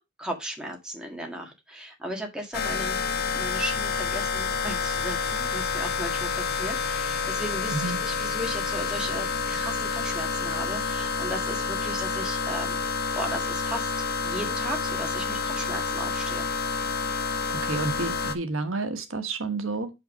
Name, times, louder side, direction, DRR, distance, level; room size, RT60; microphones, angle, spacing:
voice 1, 0.0-3.0 3.3-12.8 13.1-13.9 14.2-16.5, right 1 dB, 5° right, 1.7 m, -36 dB
sound 1, 2.5-18.4, left 5 dB, 45° left, 0.9 m, -29 dB
voice 2, 7.7-8.0 17.5-19.9, right 3 dB, 70° right, 1.3 m, -30 dB
5.8 x 5.6 x 5.2 m
head